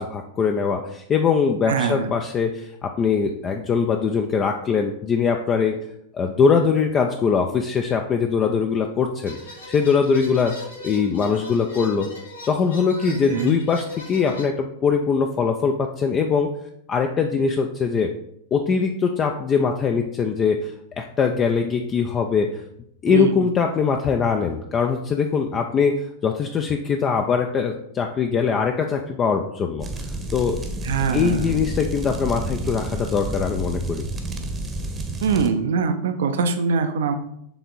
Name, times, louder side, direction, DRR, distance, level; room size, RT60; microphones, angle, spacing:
voice 1, 0.0-5.8 6.1-12.1 12.5-16.5 16.9-18.1 18.5-22.6 23.0-29.9 30.3-30.6 31.1-34.1, left 6 dB, 25° left, 4 dB, 0.5 m, -22 dB
voice 2, 1.7-2.1 13.1-13.6 23.1-23.5 30.8-31.5 35.2-37.1, right 5 dB, 60° right, 9 dB, 0.6 m, -23 dB
sound 1, 9.3-14.4, left 2 dB, 80° left, 2.0 m, -40 dB
sound 2, 29.8-35.5, right 2 dB, 20° right, 0.9 m, -30 dB
6.9 x 3.5 x 4.0 m, 0.75 s
figure-of-eight pair, 90°, 0 cm